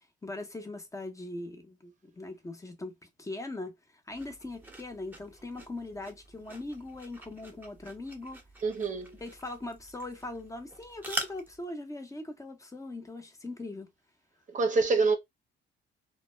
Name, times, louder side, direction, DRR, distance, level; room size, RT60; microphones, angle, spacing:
voice 1, 0.2-3.7 4.1-8.4 9.1-13.9, left 2 dB, 15° left, 0.7 m, -40 dB
sound 1, 4.1-11.6, right 1 dB, 10° right, 0.8 m, -44 dB
voice 2, 8.6-9.1 14.5-15.2, right 4 dB, 40° right, 0.6 m, -26 dB
2.1 x 2.0 x 3.1 m
cardioid pair, 90°, 20 cm